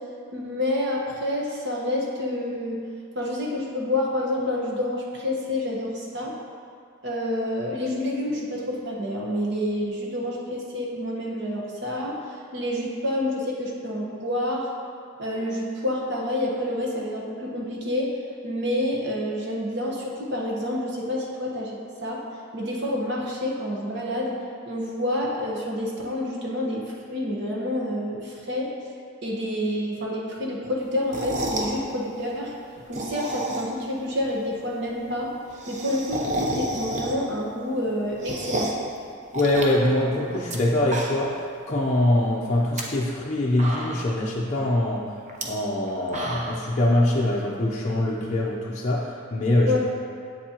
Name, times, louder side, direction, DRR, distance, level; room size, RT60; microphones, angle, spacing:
voice 1, 0.3-2.8 3.1-6.3 7.0-12.1 12.5-14.7 15.2-18.1 18.4-22.2 22.5-24.4 24.6-26.8 27.1-28.7 29.2-32.5 32.9-35.3 35.7-38.7 49.7-49.8, left 1 dB, 55° right, -3 dB, 1.1 m, -28 dB
sound 1, 31.0-31.8 32.8-33.9 34.2-34.3 34.5-34.6 34.8-34.9 35.2-37.4 37.8-38.9 39.3-40.6 40.8-41.4 41.8-41.9 42.5-42.8 43.3-43.4 43.6-44.2 45.3-45.4 45.9-46.7, right 1 dB, 35° right, 0.7 m, -31 dB
voice 2, 39.3-45.0 45.4-49.8, left 1 dB, 35° left, -5 dB, 0.6 m, -23 dB
8.0 x 7.1 x 2.9 m, 2.3 s
head